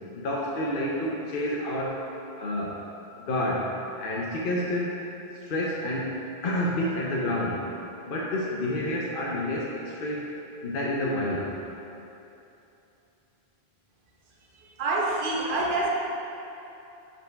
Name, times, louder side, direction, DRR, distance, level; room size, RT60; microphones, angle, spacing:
voice 1, 0.1-2.0 2.4-2.8 3.3-5.0 5.4-7.6 8.0-10.3 10.6-11.6, left 1 dB, 60° left, -4 dB, 0.9 m, -29 dB
voice 2, 14.8-15.9, right 2 dB, 55° right, -2 dB, 1.0 m, -26 dB
5.4 x 4.4 x 4.5 m, 2.9 s
omnidirectional pair, 1.0 m